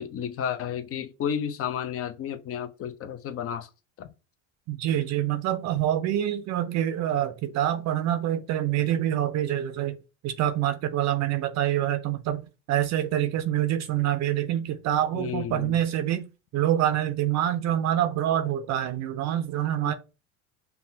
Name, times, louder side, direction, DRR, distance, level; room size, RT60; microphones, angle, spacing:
voice 1, 0.0-3.7 4.0-4.1 15.1-15.8 19.8-19.9, left 8 dB, 40° left, 0.6 m, -32 dB
voice 2, 4.7-10.0 10.2-16.3 16.5-19.9, right 11 dB, 45° right, 0.5 m, -26 dB
5.4 x 2.3 x 2.6 m
hypercardioid pair, 80°, 37 cm